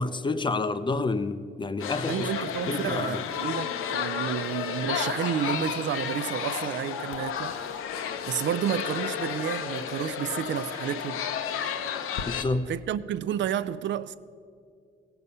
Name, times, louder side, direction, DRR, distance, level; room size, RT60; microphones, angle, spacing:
voice 1, 0.0-3.2 12.3-12.7, left 3 dB, 25° left, 0.4 m, -29 dB
sound 1, 1.8-12.4, left 8 dB, 80° left, 0.7 m, -32 dB
voice 2, 2.1-7.6 8.0-11.2 12.7-14.1, right 9 dB, 65° right, 0.4 m, -31 dB
16.0 x 6.9 x 5.4 m
cardioid pair, 110°, 21 cm